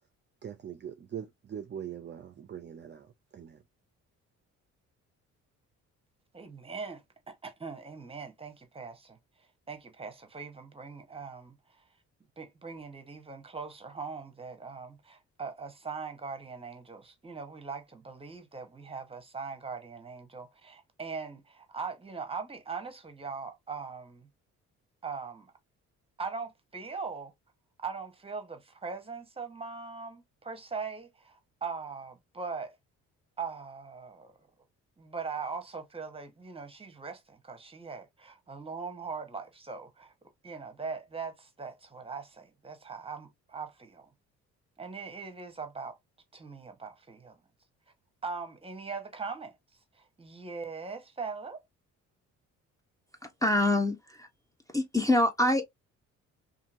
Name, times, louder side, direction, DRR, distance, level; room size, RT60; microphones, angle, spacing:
voice 1, 0.4-3.6, right 9 dB, 35° right, 0.5 m, -42 dB
voice 2, 6.3-9.2 9.7-11.8 12.4-24.3 25.0-25.5 26.2-27.3 27.8-32.7 33.4-34.4 35.0-40.1 40.4-44.1 44.8-46.0 46.3-47.4 48.2-49.6 49.9-51.6, right 5 dB, 20° right, 0.9 m, -40 dB
voice 3, 53.4-54.3 54.7-55.6, left 1 dB, 10° left, 0.6 m, -25 dB
2.8 x 2.6 x 2.4 m
cardioid pair, 90°, 30 cm